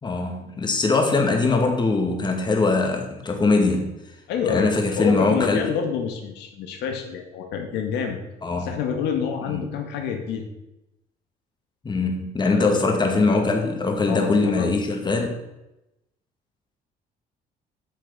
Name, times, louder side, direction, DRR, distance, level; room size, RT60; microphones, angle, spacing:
voice 1, 0.0-3.9 4.5-5.7 8.4-8.7 9.5-9.6 11.8-15.4, left 3 dB, 25° left, 3 dB, 2.3 m, -22 dB
voice 2, 4.3-8.2 8.6-10.4 12.5-12.9 14.1-14.7, left 7 dB, 80° left, 4 dB, 2.1 m, -27 dB
10.0 x 6.4 x 8.3 m, 0.92 s
cardioid pair, 110°, 17 cm